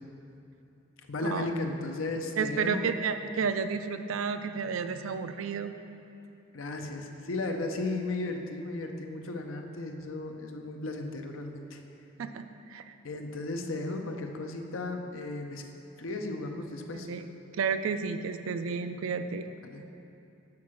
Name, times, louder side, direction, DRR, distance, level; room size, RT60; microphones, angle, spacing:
voice 1, 1.1-2.9 6.5-11.8 13.0-15.6 16.0-17.1 19.6-19.9, left 2 dB, 85° left, 4 dB, 0.6 m, -35 dB
voice 2, 2.4-5.7 12.2-12.8 16.9-17.3 17.6-19.4, right 5 dB, 90° right, 9 dB, 0.4 m, -31 dB
6.0 x 4.7 x 6.2 m, 2.9 s
head